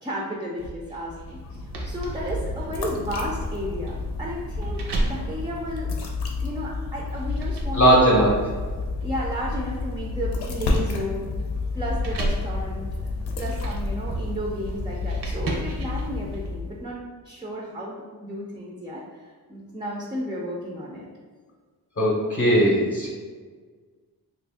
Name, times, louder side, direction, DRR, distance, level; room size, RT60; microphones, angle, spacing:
voice 1, 0.0-5.9 6.4-8.1 9.0-11.3 11.7-12.9 13.4-17.0 17.2-19.0 19.5-21.1, equal, 15° right, -3 dB, 0.4 m, -33 dB
sound 1, 0.6-6.4 7.0-16.5, right 2 dB, 85° right, 0.7 m, -34 dB
sound 2, 1.0-16.9, left 3 dB, 80° left, 0.7 m, -31 dB
voice 2, 7.7-8.4 22.0-23.1, right 1 dB, 35° left, -5 dB, 0.7 m, -18 dB
3.0 x 2.6 x 3.4 m, 1.5 s
wide cardioid pair, 110°, 39 cm